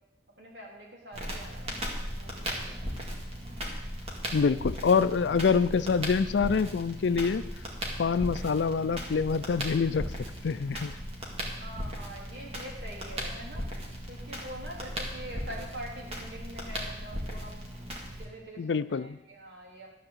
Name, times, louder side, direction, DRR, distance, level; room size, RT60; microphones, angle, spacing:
voice 1, 0.4-3.0 11.5-13.8 14.0-19.9, right 1 dB, 75° right, -3 dB, 3.2 m, -45 dB
Crackle, 1.1-18.2, equal, 35° right, 2.1 m, -37 dB
voice 2, 4.3-7.4 8.0-10.1 10.4-10.9 18.6-19.2, left 5 dB, 80° left, 15 dB, 0.4 m, -26 dB
12.5 x 4.8 x 8.0 m, 0.98 s
head